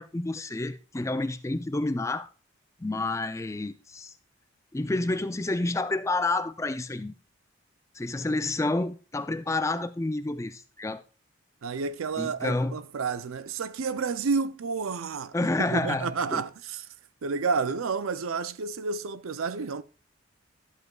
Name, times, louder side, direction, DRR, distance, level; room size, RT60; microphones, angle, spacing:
voice 1, 0.0-2.3 2.8-4.1 4.7-7.1 7.9-11.0 12.2-12.8 15.3-16.4, left 2 dB, 15° left, 0.4 m, -29 dB
voice 2, 11.6-16.8 17.2-19.8, right 5 dB, 85° right, 0.5 m, -30 dB
13.0 x 8.0 x 2.3 m
head